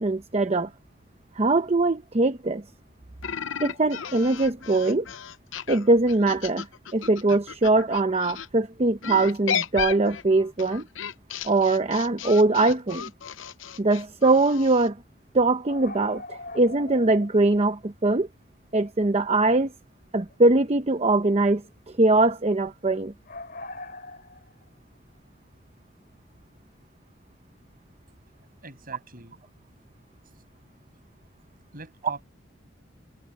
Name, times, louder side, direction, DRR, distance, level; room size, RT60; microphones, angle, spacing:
voice 1, 0.0-0.7 1.4-2.6 3.6-5.1 5.7-6.7 6.9-10.8 11.4-13.0 13.8-15.0 15.3-18.3 18.7-19.7 20.1-21.6 22.0-23.1, right 2 dB, 35° right, 0.8 m, -22 dB
sound 1, 3.2-8.5 9.0-14.9, left 8 dB, 85° left, 0.8 m, -34 dB
sound 2, 15.6-17.4 17.7-17.8 20.3-21.0 21.4-21.7 23.3-24.7, left 2 dB, 55° left, 2.8 m, -41 dB
voice 2, 28.6-29.4 31.7-32.2, right 3 dB, 50° right, 7.2 m, -41 dB
head